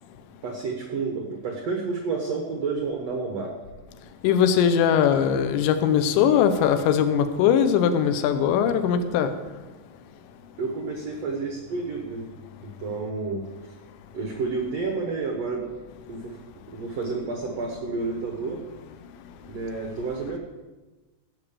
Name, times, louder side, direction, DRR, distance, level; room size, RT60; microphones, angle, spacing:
voice 1, 0.4-3.5 10.6-12.3 12.6-13.5 14.1-15.7 16.1-16.4 16.7-18.6 19.4-20.4, right 4 dB, 85° right, 2 dB, 1.4 m, -30 dB
voice 2, 4.2-9.3, left 8 dB, 85° left, 9 dB, 3.1 m, -20 dB
16.5 x 6.1 x 6.9 m, 1.2 s
omnidirectional pair, 5.0 m